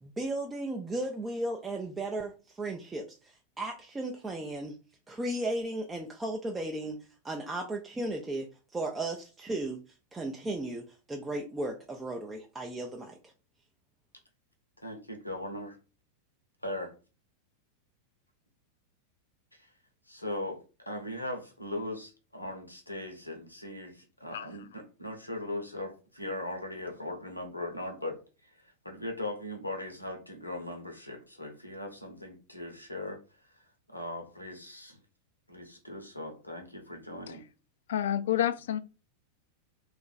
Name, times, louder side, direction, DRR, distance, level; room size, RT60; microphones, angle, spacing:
voice 1, 0.0-4.7 5.1-7.0 7.2-9.8 10.1-10.8 11.1-13.2, right 1 dB, 15° right, 0.5 m, -35 dB
voice 2, 14.8-15.8 16.6-16.9 19.6-19.7 20.1-20.6 20.9-28.2 28.8-33.2 33.9-35.0 35.5-37.4, left 1 dB, 85° left, 0.9 m, -39 dB
voice 3, 37.9-38.8, left 11 dB, 60° left, 0.3 m, -29 dB
3.0 x 2.5 x 3.9 m
figure-of-eight pair, 90°, 0 cm